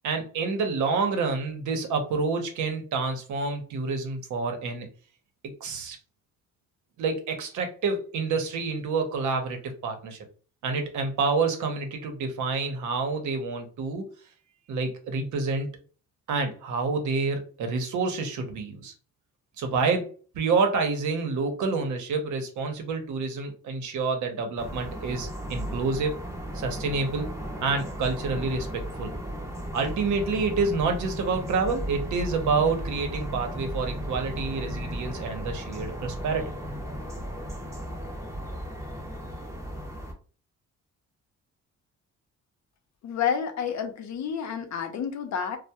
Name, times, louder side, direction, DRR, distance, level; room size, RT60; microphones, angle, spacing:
voice 1, 0.0-4.9 5.4-6.0 7.0-10.2 10.6-14.1 14.7-15.7 16.3-18.9 19.6-20.1 20.3-26.2 26.5-27.3 27.6-29.1 29.7-36.4, right 4 dB, 75° right, 5 dB, 0.7 m, -28 dB
sound 1, 24.6-40.1, equal, 10° right, 0.6 m, -35 dB
voice 2, 43.0-45.6, left 7 dB, 65° left, 6 dB, 0.6 m, -29 dB
2.2 x 2.0 x 2.8 m, 0.39 s
cardioid pair, 90°, 30 cm